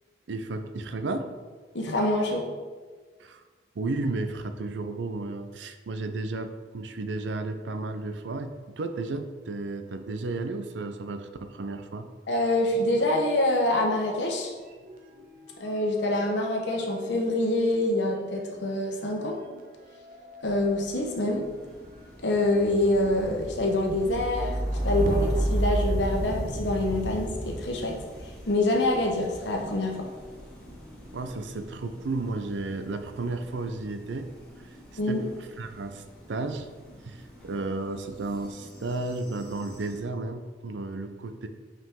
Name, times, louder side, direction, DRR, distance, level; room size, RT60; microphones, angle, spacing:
voice 1, 0.3-1.3 3.2-3.4 3.8-12.1 31.1-34.3 35.1-35.3 35.6-36.7 37.0-41.5, right 2 dB, 85° right, 8 dB, 0.5 m, -33 dB
voice 2, 1.7-2.4 12.3-14.5 15.6-19.4 20.4-21.4 22.2-24.6 24.8-28.0 28.5-30.1 35.0-35.2, left 1 dB, 80° left, 1 dB, 1.0 m, -26 dB
sound 1, 12.9-14.3 14.5-29.6 30.4-30.9, right 1 dB, 50° right, 0.8 m, -33 dB
sound 2, 20.4-40.0, equal, 5° left, 1.7 m, -48 dB
5.6 x 4.9 x 3.7 m, 1.4 s
head